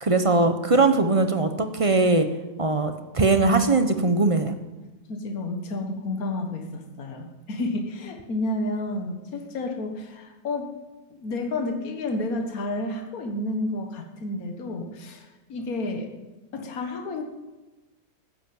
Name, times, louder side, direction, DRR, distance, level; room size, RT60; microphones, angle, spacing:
voice 1, 0.0-2.3 2.6-4.6, right 3 dB, 25° right, 8 dB, 0.8 m, -21 dB
voice 2, 5.1-10.7 11.1-16.1 16.5-17.2, left 2 dB, 60° left, 4 dB, 1.9 m, -31 dB
14.5 x 10.5 x 7.8 m, 1.1 s
omnidirectional pair, 1.7 m